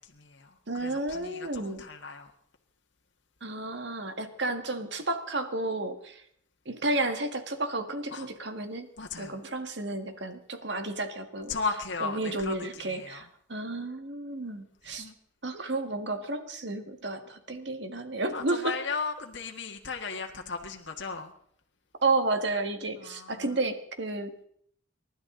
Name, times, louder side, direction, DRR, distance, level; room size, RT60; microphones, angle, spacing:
voice 1, 0.0-2.3 8.1-8.3 9.0-9.4 11.5-13.2 14.8-15.1 18.3-21.3 23.0-23.6, left 4 dB, 65° left, 2 dB, 1.7 m, -36 dB
voice 2, 0.7-1.8 3.4-6.2 6.7-8.9 9.2-11.6 12.0-15.1 15.4-18.7 22.0-24.5, right 2 dB, 60° right, 7 dB, 1.8 m, -32 dB
29.0 x 12.5 x 3.9 m, 0.65 s
head